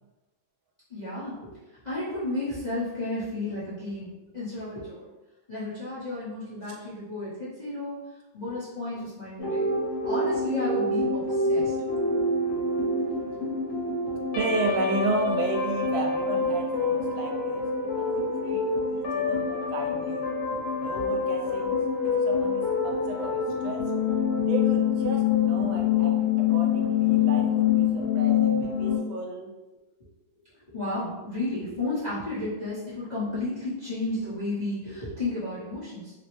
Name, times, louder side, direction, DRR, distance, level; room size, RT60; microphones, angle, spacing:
voice 1, 0.9-1.5 1.8-5.1 5.5-8.0 8.3-9.7 10.1-11.7 20.9-21.0 29.0-29.1 30.7-36.1, left 2 dB, 35° left, -12 dB, 0.7 m, -33 dB
sound 1, 9.4-29.0, left 5 dB, 70° left, 1.4 m, -26 dB
voice 2, 14.3-18.6 18.9-20.2 20.8-21.8 22.0-23.8 24.4-29.5, right 2 dB, 85° right, 1 dB, 1.4 m, -33 dB
3.4 x 2.0 x 3.0 m, 1.0 s
omnidirectional pair, 2.2 m